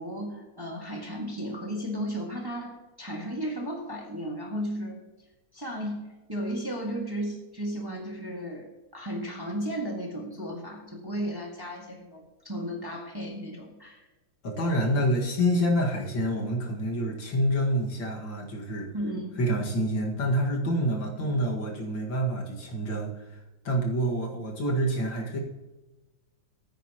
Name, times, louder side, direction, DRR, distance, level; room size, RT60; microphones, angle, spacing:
voice 1, 0.0-5.0 5.5-14.1 18.9-19.4 21.1-21.4, equal, 10° right, -1 dB, 1.6 m, -34 dB
voice 2, 14.4-18.9 19.4-25.4, equal, 65° left, 0 dB, 2.6 m, -27 dB
15.0 x 9.0 x 3.0 m, 1.1 s
omnidirectional pair, 2.2 m